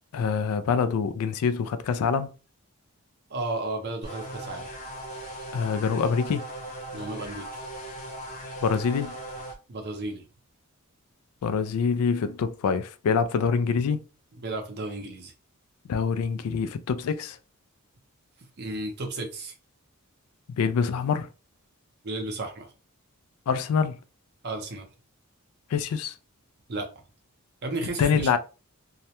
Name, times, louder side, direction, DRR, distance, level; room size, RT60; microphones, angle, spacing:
voice 1, 0.1-2.3 5.5-6.4 8.6-9.2 11.4-14.0 15.9-17.4 20.6-21.3 23.5-24.0 25.7-26.2 28.0-28.4, left 6 dB, 75° left, 0.3 m, -25 dB
voice 2, 3.3-4.7 6.9-7.6 9.7-10.2 14.4-15.3 18.6-19.5 22.0-22.7 24.4-24.9 26.7-26.9 27.6-28.4, right 2 dB, 45° right, 0.6 m, -33 dB
sound 1, 4.0-9.5, right 1 dB, 30° left, 0.7 m, -38 dB
2.3 x 2.1 x 2.8 m
head